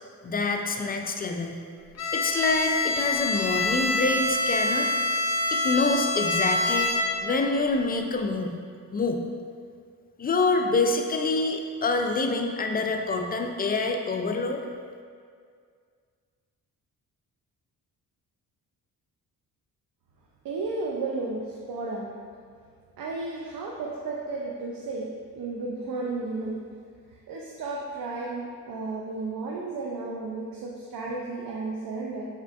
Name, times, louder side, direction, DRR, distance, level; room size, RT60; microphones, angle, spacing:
voice 1, 0.2-1.6 2.1-4.9 5.5-6.9 7.2-8.6 8.9-9.2 10.2-14.7, left 3 dB, 25° left, 4 dB, 0.3 m, -26 dB
Bowed string instrument, 2.0-7.4, left 2 dB, 40° left, 0.7 m, -26 dB
voice 2, 20.4-22.1 23.0-25.1 25.3-26.6 27.3-32.3, right 3 dB, 55° right, -2 dB, 0.6 m, -33 dB
4.4 x 3.5 x 2.4 m, 2.1 s
supercardioid pair, 55°, 41 cm